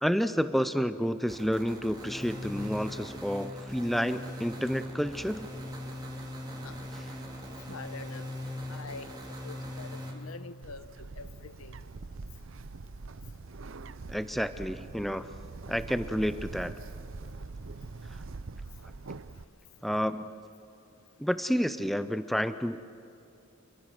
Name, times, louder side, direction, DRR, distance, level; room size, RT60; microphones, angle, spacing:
voice 1, 0.0-5.5 14.1-15.3 15.7-16.7 19.8-20.3 21.2-22.8, equal, ahead, 12 dB, 0.5 m, -30 dB
sound 1, 1.3-10.1, left 1 dB, 20° right, 3.6 m, -40 dB
voice 2, 7.7-8.3 8.7-9.1 9.4-11.8, left 4 dB, 80° left, 13 dB, 0.9 m, -45 dB
Bird, 10.6-19.4, right 3 dB, 65° right, 0.7 m, -43 dB
28.0 x 23.5 x 6.1 m, 2.7 s
head